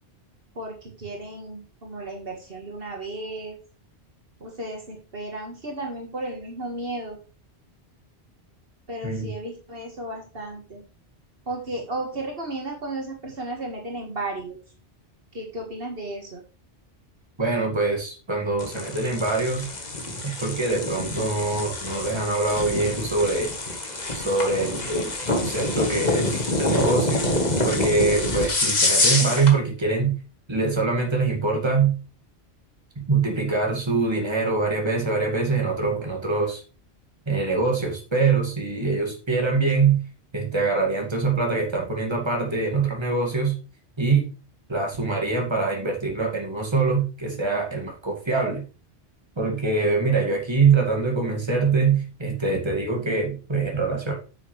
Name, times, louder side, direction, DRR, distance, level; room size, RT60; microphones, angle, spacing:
voice 1, 0.6-3.6 4.4-7.2 8.9-10.8 11.5-14.6 15.3-16.4, right 2 dB, 65° right, 1 dB, 2.0 m, -34 dB
voice 2, 17.4-19.7 20.2-23.5 24.1-30.1 30.5-32.0 33.0-36.6 37.3-40.0 40.3-43.5 44.0-44.3 44.7-48.7 49.4-54.1, right 4 dB, 25° right, 1 dB, 2.3 m, -24 dB
sound 1, 18.6-29.6, left 2 dB, 40° left, 1.6 m, -26 dB
8.8 x 6.7 x 3.3 m, 0.33 s
omnidirectional pair, 1.1 m